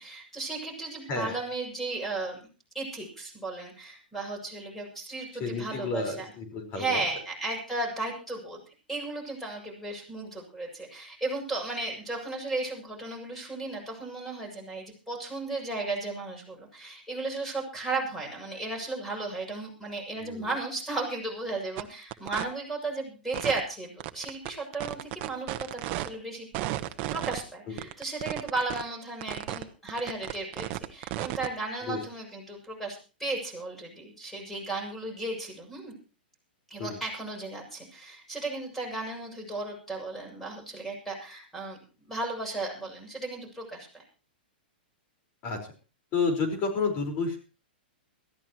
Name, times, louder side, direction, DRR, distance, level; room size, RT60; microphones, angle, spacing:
voice 1, 0.0-2.4 2.7-6.3 6.7-8.6 8.9-26.5 27.1-35.9 36.7-44.0, right 2 dB, 5° left, 2 dB, 7.3 m, -35 dB
voice 2, 5.4-7.0 20.2-20.5 27.7-27.9 31.8-32.0 36.8-37.0 45.4-45.6 46.1-47.4, left 4 dB, 35° left, 5 dB, 4.9 m, -30 dB
sound 1, 21.8-21.9 22.1-22.4 23.3-23.6 24.0-26.1 26.5-27.4 27.8-28.8 29.2-29.6 29.9-31.5, right 15 dB, 40° right, 1.2 m, -33 dB
22.0 x 14.5 x 3.1 m, 0.35 s
hypercardioid pair, 130°, 6 cm